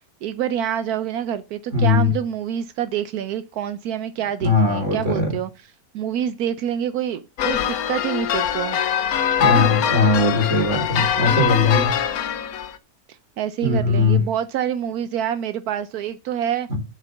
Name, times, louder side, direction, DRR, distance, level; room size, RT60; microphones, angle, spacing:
voice 1, 0.2-5.5 5.9-8.8 9.4-9.7 13.1-16.7, right 9 dB, 75° right, 1.1 m, -27 dB
voice 2, 1.7-2.1 4.4-5.3 9.4-11.9 13.6-14.2 16.7-16.8, left 3 dB, 50° right, 2.7 m, -19 dB
sound 1, 7.4-12.8, left 9 dB, 70° left, 1.2 m, -22 dB
7.4 x 5.3 x 6.4 m
omnidirectional pair, 1.6 m